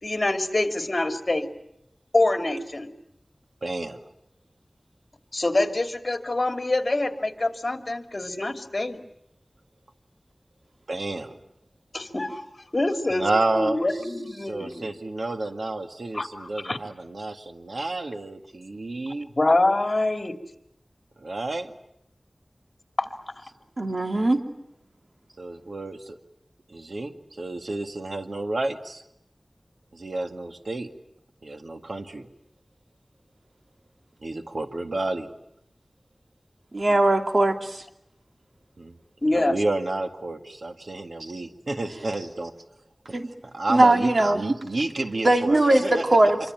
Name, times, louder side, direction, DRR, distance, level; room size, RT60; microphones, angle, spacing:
voice 1, 0.0-1.5 2.1-2.9 5.3-9.0 11.9-12.4 12.7-13.3 13.5-14.9 16.1-16.8 19.4-20.3 23.0-23.1 39.2-39.5, left 2 dB, 50° left, 6 dB, 2.7 m, -25 dB
voice 2, 3.6-4.0 10.9-11.4 13.1-14.1 14.4-19.3 21.2-21.7 25.4-26.2 26.7-29.0 29.9-30.9 31.4-32.3 34.2-35.3 38.8-39.0 39.3-42.5 43.4-46.2, right 2 dB, 90° right, 6 dB, 2.0 m, -30 dB
voice 3, 23.8-24.4 36.7-37.8 43.1-43.2 43.7-44.4 45.2-46.4, right 2 dB, 65° right, 4 dB, 2.7 m, -20 dB
26.5 x 24.5 x 9.1 m, 0.79 s
wide cardioid pair, 50°, 0 cm